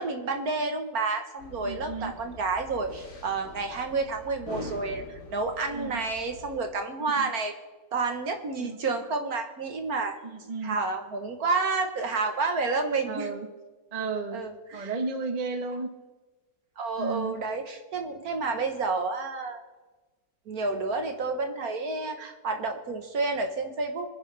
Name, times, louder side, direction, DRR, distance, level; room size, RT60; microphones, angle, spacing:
voice 1, 0.0-5.0 5.3-7.5 7.9-10.2 10.6-13.3 14.3-14.9 16.8-19.6 20.5-24.1, right 3 dB, 55° right, 5 dB, 1.6 m, -30 dB
sound 1, 1.4-6.6, left 2 dB, 65° left, 2.6 m, -44 dB
voice 2, 1.6-2.1 5.7-6.0 7.2-7.3 8.6-8.8 10.2-10.8 13.1-13.5 13.9-14.4 14.7-15.9 17.0-17.3, right 4 dB, 30° right, 6 dB, 0.9 m, -33 dB
24.0 x 10.5 x 3.3 m, 1.2 s
omnidirectional pair, 2.0 m